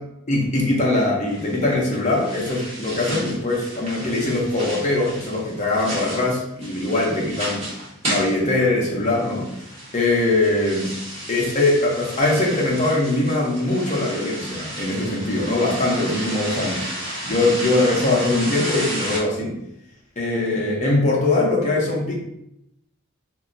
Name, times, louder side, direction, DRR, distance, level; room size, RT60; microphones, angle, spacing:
voice 1, 0.3-7.7 8.0-9.5 9.9-11.0 11.3-16.9 17.2-19.6 20.2-22.2, left 2 dB, 35° left, -3 dB, 0.7 m, -21 dB
sound 1, 1.3-19.2, right 1 dB, 30° right, 1.0 m, -33 dB
2.2 x 2.1 x 3.8 m, 0.78 s
head